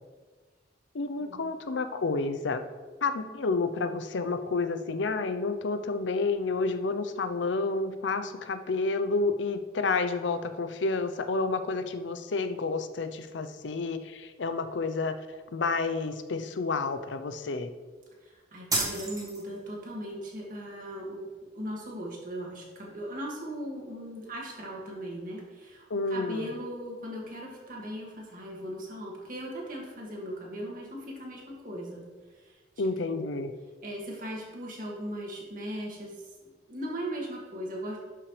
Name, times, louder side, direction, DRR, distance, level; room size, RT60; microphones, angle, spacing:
voice 1, 0.9-2.6 3.0-15.2 15.5-17.7 25.9-26.5 32.8-33.5, left 3 dB, 90° left, 10 dB, 0.6 m, -30 dB
voice 2, 18.2-21.3 21.5-32.0 32.4-32.6 33.0-33.3 33.8-36.3 36.7-38.0, equal, 50° right, -2 dB, 2.0 m, -38 dB
sound 1, 18.7-19.7, right 2 dB, 20° right, 2.0 m, -31 dB
12.0 x 5.9 x 3.2 m, 1.4 s
head